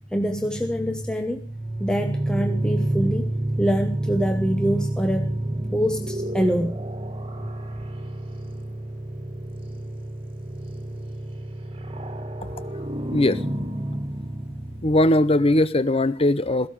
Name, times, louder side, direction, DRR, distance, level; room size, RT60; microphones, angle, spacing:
voice 1, 0.1-1.5 1.8-3.3 3.6-6.8, equal, 5° left, 5 dB, 1.1 m, -25 dB
sound 1, 1.1-15.7, right 1 dB, 25° right, 2.1 m, -29 dB
voice 2, 13.1-13.4 14.8-16.7, left 1 dB, 25° left, 15 dB, 0.6 m, -20 dB
17.5 x 14.5 x 5.0 m, 0.44 s
head